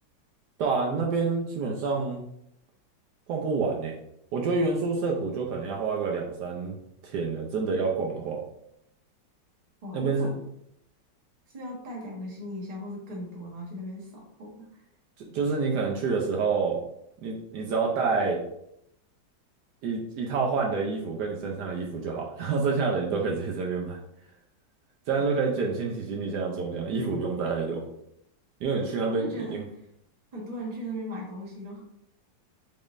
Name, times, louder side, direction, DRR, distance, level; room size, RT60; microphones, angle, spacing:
voice 1, 0.6-2.2 3.3-3.9 4.3-6.8 7.0-8.4 9.9-10.3 15.2-16.8 17.2-18.4 19.8-24.0 25.1-27.8 28.6-29.6, right 4 dB, 75° right, 0 dB, 1.1 m, -28 dB
voice 2, 9.8-10.3 11.5-14.8 28.8-29.6 30.3-31.8, equal, 30° right, -3 dB, 0.8 m, -38 dB
4.0 x 3.7 x 2.5 m, 0.76 s
omnidirectional pair, 2.0 m